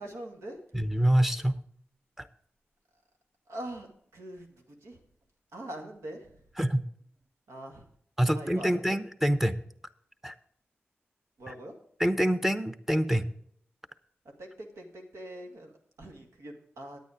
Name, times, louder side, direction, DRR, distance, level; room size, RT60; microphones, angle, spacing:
voice 1, 0.0-0.6 3.5-3.9 4.1-5.0 5.5-6.3 7.5-7.9 8.3-9.0 11.4-11.7 14.4-15.7 16.0-17.0, right 1 dB, 85° right, 2 dB, 2.0 m, -43 dB
voice 2, 0.7-1.6 6.6-6.8 8.2-9.6 10.2-10.3 11.5-11.6 12.0-13.3, equal, 5° right, 12 dB, 0.9 m, -26 dB
9.5 x 9.1 x 5.0 m, 0.65 s
cardioid pair, 50°, 5 cm